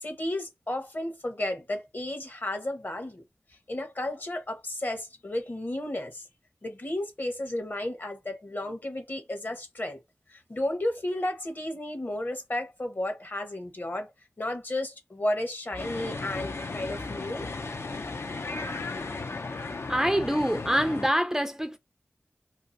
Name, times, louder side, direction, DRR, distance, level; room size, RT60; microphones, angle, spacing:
voice 1, 0.0-3.2 3.7-6.2 6.6-10.0 10.3-14.1 14.4-17.5, left 1 dB, 50° left, 0.9 m, -33 dB
sound 1, 15.8-21.1, left 3 dB, 70° left, 0.4 m, -35 dB
voice 2, 19.9-21.8, equal, 10° right, 0.4 m, -25 dB
2.7 x 2.4 x 2.5 m
wide cardioid pair, 45°, 5 cm